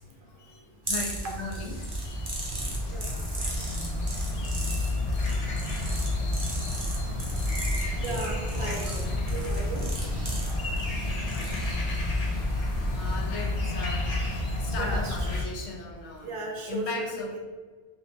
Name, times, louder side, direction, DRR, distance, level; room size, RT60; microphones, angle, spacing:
voice 1, 0.1-1.8 2.0-2.4 5.9-6.2 11.0-11.7 12.6-14.1 14.6-16.3 16.7-17.4, left 3 dB, 80° left, 0 dB, 0.9 m, -38 dB
sound 1, 0.8-13.2, right 1 dB, 30° right, 0.6 m, -36 dB
sound 2, 1.2-15.4, left 2 dB, 45° left, 0.5 m, -30 dB
voice 2, 8.0-9.9 10.5-10.8 14.8-15.5 16.2-17.4, right 2 dB, 60° right, 1 dB, 0.7 m, -36 dB
2.9 x 2.8 x 3.4 m, 1.4 s
omnidirectional pair, 1.1 m